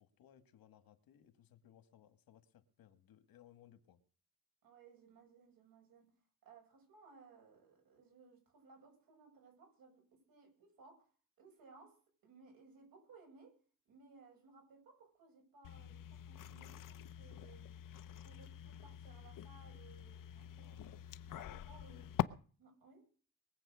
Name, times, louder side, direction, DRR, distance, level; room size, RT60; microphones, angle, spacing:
voice 1, 0.0-4.0 20.6-21.1 21.9-22.1, left 10 dB, 85° left, 11 dB, 2.0 m, -64 dB
voice 2, 4.6-6.1 6.4-13.6 13.9-17.7 18.2-22.0 22.6-23.1, right 4 dB, 80° right, 2 dB, 7.3 m, -62 dB
sound 1, 15.6-22.2, left 12 dB, 65° left, 0.8 m, -45 dB
22.0 x 7.9 x 6.3 m, 0.41 s
cardioid pair, 130°, 35 cm